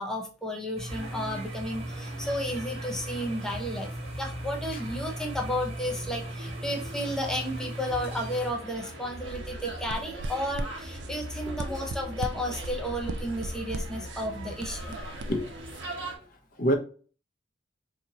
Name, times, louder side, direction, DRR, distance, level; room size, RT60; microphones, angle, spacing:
voice 1, 0.0-3.9 4.2-14.9, equal, 5° left, 0.5 m, -33 dB
sound 1, 0.8-8.5, right 1 dB, 35° right, 0.7 m, -38 dB
sound 2, 0.9-16.2, right 1 dB, 85° right, 1.1 m, -41 dB
sound 3, 9.2-15.8, right 2 dB, 65° right, 0.3 m, -39 dB
voice 2, 11.5-11.8 15.2-15.5 15.8-15.9 16.6-16.7, equal, 45° left, 0.6 m, -28 dB
4.1 x 2.6 x 2.7 m
head